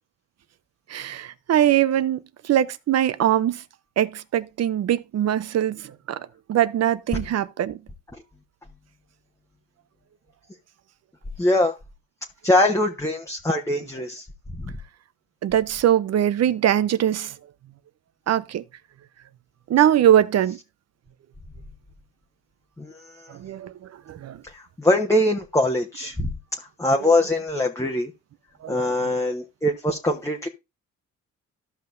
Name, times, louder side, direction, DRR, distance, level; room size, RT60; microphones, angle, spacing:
voice 1, 0.9-3.6 4.0-6.2 6.5-7.8 15.4-17.3 18.3-18.6 19.7-20.6 23.3-23.7 24.1-24.4 27.0-27.1 28.6-29.2, right 11 dB, 55° right, 0.7 m, -22 dB
voice 2, 11.4-11.7 12.4-14.2 14.6-14.7 22.8-22.9 23.2-23.3 24.5-26.3 26.8-28.1 28.7-30.5, left 1 dB, 10° left, 1.1 m, -22 dB
14.0 x 5.7 x 2.6 m
cardioid pair, 90°, 30 cm